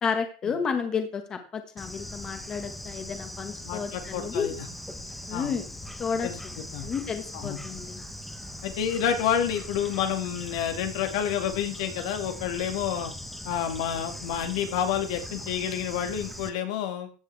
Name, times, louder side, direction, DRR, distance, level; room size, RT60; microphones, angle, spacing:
voice 1, 0.0-4.5 5.3-5.7 6.0-6.3 6.8-8.0, left 6 dB, 25° left, 6 dB, 1.5 m, -31 dB
Bird / Insect, 1.8-16.5, left 1 dB, 5° left, 1.0 m, -40 dB
voice 2, 3.6-4.7 5.3-5.5 6.2-6.4 6.7-6.9 7.3-7.6 8.6-13.1 13.4-17.1, left 9 dB, 75° left, 5 dB, 2.2 m, -29 dB
15.5 x 9.0 x 3.5 m, 0.38 s
cardioid pair, 160°, 3 cm